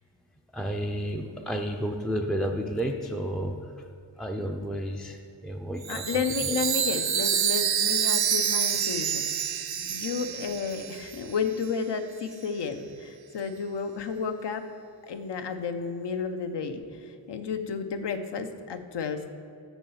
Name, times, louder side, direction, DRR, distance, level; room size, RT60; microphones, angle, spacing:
voice 1, 0.5-3.9 4.2-6.0 6.4-6.6 9.8-10.0, equal, ahead, 2 dB, 0.4 m, -32 dB
Chime, 5.8-11.4, right 8 dB, 55° right, 0.6 m, -27 dB
voice 2, 5.9-9.3 9.9-14.7 15.0-19.3, left 5 dB, 65° left, 8 dB, 0.8 m, -32 dB
7.2 x 5.7 x 7.0 m, 2.5 s
wide cardioid pair, 130°, 45 cm